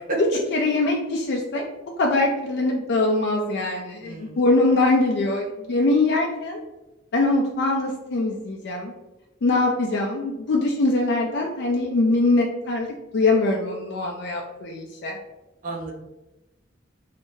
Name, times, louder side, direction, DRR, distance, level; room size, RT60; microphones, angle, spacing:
voice 1, 0.5-1.6 2.0-6.6 7.1-8.9 9.4-12.9 13.1-15.2, left 2 dB, 60° left, 0 dB, 0.4 m, -22 dB
voice 2, 4.0-4.4 15.6-15.9, right 2 dB, 45° right, 1 dB, 0.6 m, -31 dB
3.2 x 3.2 x 2.7 m, 1.0 s
head